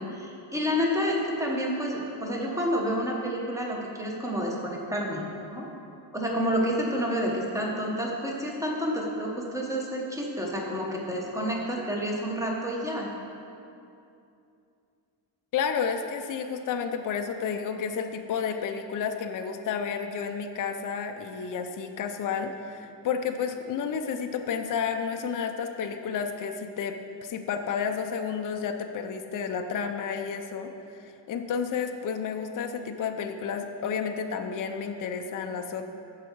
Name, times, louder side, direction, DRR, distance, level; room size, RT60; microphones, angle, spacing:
voice 1, 0.0-5.2 5.5-5.7 6.1-13.1, equal, 5° right, -2 dB, 1.1 m, -29 dB
voice 2, 15.5-26.9 27.2-35.9, left 6 dB, 45° left, 5 dB, 0.5 m, -31 dB
13.5 x 4.7 x 4.6 m, 2.6 s
wide cardioid pair, 160°, 46 cm